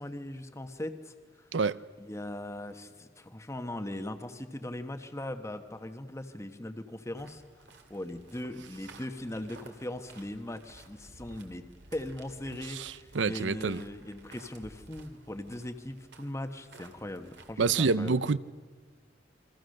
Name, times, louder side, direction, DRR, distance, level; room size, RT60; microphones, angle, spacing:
voice 1, 0.0-1.5 2.0-7.4 7.9-11.6 11.9-18.2, left 1 dB, 15° left, 1.2 m, -39 dB
sound 1, 7.1-17.5, right 2 dB, 70° right, 2.6 m, -54 dB
voice 2, 12.7-13.8 17.6-18.4, right 4 dB, 85° right, 0.7 m, -27 dB
29.0 x 23.0 x 6.6 m
head